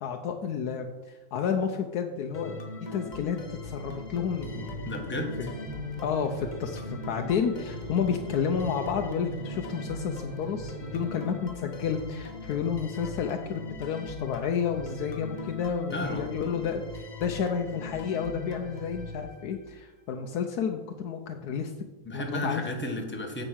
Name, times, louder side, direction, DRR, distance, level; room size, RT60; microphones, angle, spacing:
voice 1, 0.0-2.6 2.9-4.7 5.1-5.5 6.0-21.7 22.1-22.6, left 7 dB, 80° left, 4 dB, 1.3 m, -31 dB
sound 1, 2.3-19.9, left 3 dB, 30° left, 1.3 m, -40 dB
sound 2, 4.3-11.2, right 4 dB, 40° right, 0.8 m, -41 dB
voice 2, 4.8-5.5 15.9-16.3 22.0-23.4, left 1 dB, 5° left, 1 dB, 1.5 m, -33 dB
9.1 x 7.5 x 6.3 m, 1.2 s
omnidirectional pair, 1.6 m